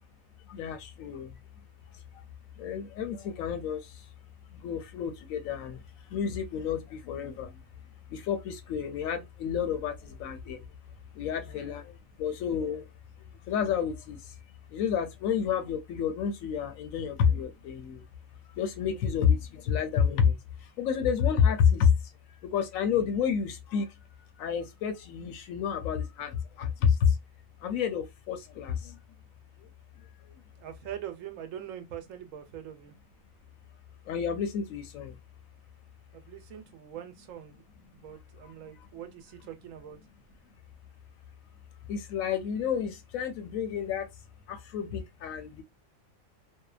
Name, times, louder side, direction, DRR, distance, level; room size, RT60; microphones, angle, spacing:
voice 1, 0.5-1.3 2.6-3.8 4.6-5.8 6.1-7.5 8.1-10.6 11.2-11.9 12.2-12.8 13.5-14.2 14.7-18.0 18.6-20.4 20.8-21.9 22.5-23.9 24.4-27.1 27.6-28.9 34.1-35.1 41.9-44.1 44.5-45.6, left 7 dB, 85° left, 1.0 m, -29 dB
voice 2, 30.6-33.0 36.1-37.6 37.9-40.0, right 10 dB, 75° right, 1.0 m, -43 dB
2.7 x 2.1 x 2.3 m
omnidirectional pair, 1.4 m